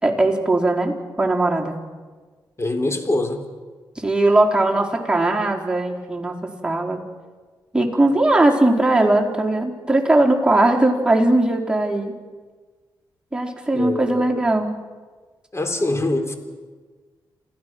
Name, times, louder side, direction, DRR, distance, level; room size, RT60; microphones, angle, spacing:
voice 1, 0.0-1.8 4.0-7.0 7.7-12.1 13.3-14.7, right 2 dB, 10° right, -1 dB, 4.1 m, -19 dB
voice 2, 2.6-3.4 13.7-14.4 15.5-16.4, left 2 dB, 30° left, 5 dB, 3.7 m, -24 dB
28.0 x 16.0 x 6.1 m, 1.4 s
supercardioid pair, 50°, 9 cm